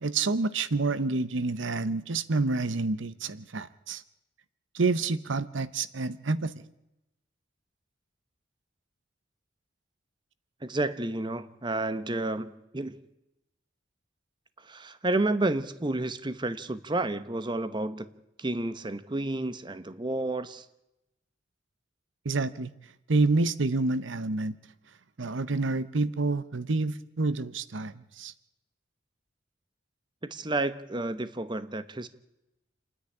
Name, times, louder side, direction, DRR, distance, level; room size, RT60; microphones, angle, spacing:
voice 1, 0.0-4.0 4.7-6.5 22.2-22.7 23.1-24.6 25.2-28.3, right 3 dB, 75° right, 15 dB, 0.8 m, -28 dB
voice 2, 10.6-13.0 14.6-18.1 18.4-20.6 30.3-32.1, right 2 dB, 25° right, 12 dB, 0.9 m, -31 dB
28.0 x 10.0 x 9.9 m, 0.91 s
head